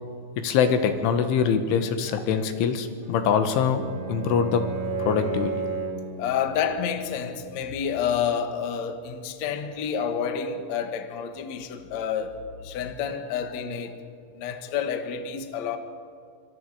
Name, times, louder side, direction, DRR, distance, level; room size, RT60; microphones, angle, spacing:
voice 1, 0.4-3.8 4.1-4.6 5.0-5.5, left 7 dB, 80° left, 3.9 m, -23 dB
Bowed string instrument, 3.0-6.2, right 4 dB, 35° right, 3.5 m, -32 dB
voice 2, 6.2-14.0 14.3-15.8, left 7 dB, 65° left, 1.7 m, -29 dB
26.0 x 25.5 x 4.9 m
omnidirectional pair, 5.5 m